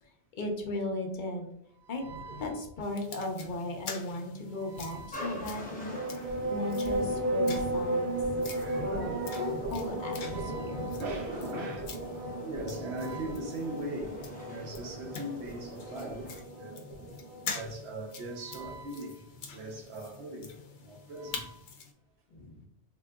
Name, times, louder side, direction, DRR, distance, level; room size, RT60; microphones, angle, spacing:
voice 1, 0.0-1.5 1.9-2.1 2.4-6.0 6.5-8.1 8.8-10.9 12.1-12.3 16.9-17.5 22.3-22.7, left 2 dB, 50° left, 0.7 m, -37 dB
voice 2, 1.9-2.6 4.6-5.4 8.5-9.5 10.2-11.8 12.4-16.3 16.6-16.8 17.5-19.1 19.5-20.4 20.8-21.5, right 1 dB, 70° right, 1.0 m, -40 dB
sound 1, 2.8-21.9, left 5 dB, 85° left, 0.9 m, -46 dB
sound 2, 5.1-16.4, equal, 10° left, 0.6 m, -47 dB
sound 3, 5.9-17.7, right 1 dB, 55° right, 0.7 m, -35 dB
3.7 x 2.9 x 2.2 m
omnidirectional pair, 1.2 m